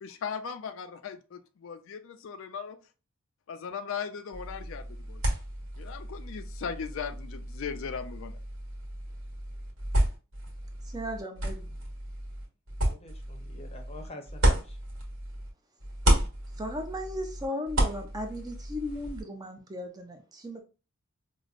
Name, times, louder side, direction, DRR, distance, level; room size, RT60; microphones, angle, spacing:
voice 1, 0.0-2.8 3.5-5.2 5.8-8.4, left 6 dB, 60° left, 0.3 m, -38 dB
sound 1, 4.3-15.5 15.8-19.2, right 1 dB, 70° right, 1.3 m, -31 dB
voice 2, 10.8-11.7 16.6-20.6, left 1 dB, 20° right, 0.4 m, -36 dB
voice 3, 12.8-14.8, left 2 dB, 30° left, 0.6 m, -47 dB
4.9 x 2.0 x 2.4 m
head